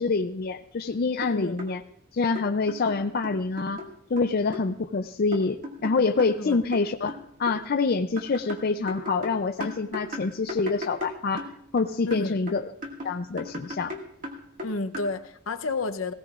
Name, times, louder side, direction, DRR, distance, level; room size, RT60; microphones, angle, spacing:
voice 1, 0.0-1.8 2.1-3.8 4.1-11.5 11.7-12.6 13.0-14.0, left 4 dB, 45° left, 0.4 m, -26 dB
sound 1, 0.9-1.0 1.2-1.7 2.3-3.9 4.2-4.7 5.3-7.6 8.2-11.8 12.1-15.1, left 2 dB, 40° right, 2.0 m, -37 dB
voice 2, 1.2-1.6 6.4-6.6 12.1-12.4 14.6-16.1, left 3 dB, 70° left, 0.7 m, -31 dB
18.5 x 16.5 x 2.4 m
head